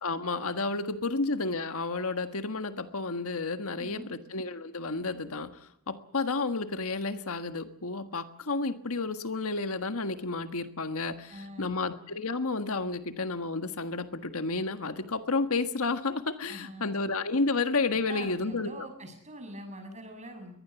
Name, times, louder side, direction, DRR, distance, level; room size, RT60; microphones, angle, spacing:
voice 1, 0.0-18.9, left 3 dB, 70° left, 9 dB, 1.5 m, -31 dB
voice 2, 3.8-4.1 11.3-11.8 16.5-17.0 18.1-20.6, right 1 dB, 30° right, 6 dB, 6.9 m, -44 dB
23.0 x 19.5 x 7.1 m, 0.73 s
head